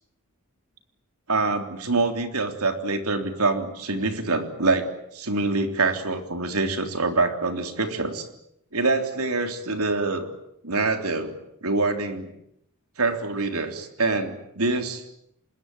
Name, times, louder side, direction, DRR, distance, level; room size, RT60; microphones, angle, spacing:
voice 1, 1.3-8.3 8.7-10.3 10.6-12.3 13.0-15.0, right 3 dB, 85° right, 6 dB, 3.5 m, -25 dB
26.0 x 21.5 x 9.2 m, 0.76 s
head